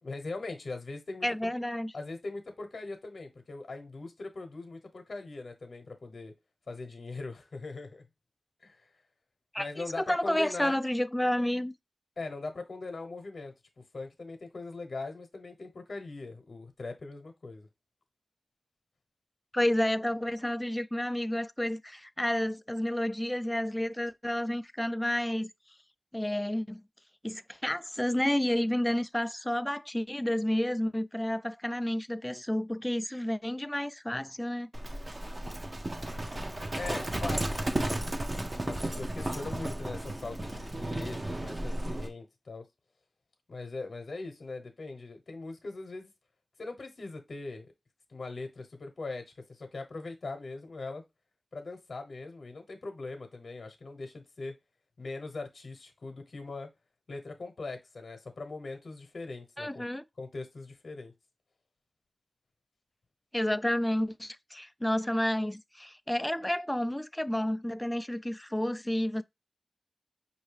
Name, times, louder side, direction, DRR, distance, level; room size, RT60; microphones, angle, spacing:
voice 1, 0.0-1.5 1.9-6.3 6.7-8.0 8.6-8.9 9.6-10.8 12.2-13.5 13.9-17.7 36.8-37.9 38.7-42.7 43.5-46.1 46.6-47.7 48.1-51.0 51.5-54.5 55.0-56.7 57.1-59.9 60.2-61.1, left 3 dB, 75° left, 0.9 m, -41 dB
voice 2, 1.2-1.9 9.5-11.7 19.5-25.5 26.1-26.8 27.2-34.7 59.6-60.0 63.3-69.2, left 1 dB, 10° left, 0.3 m, -30 dB
Livestock farm animals working animals, 34.7-42.1, right 1 dB, 35° right, 0.8 m, -34 dB
5.3 x 2.7 x 3.2 m
wide cardioid pair, 80°, 0 cm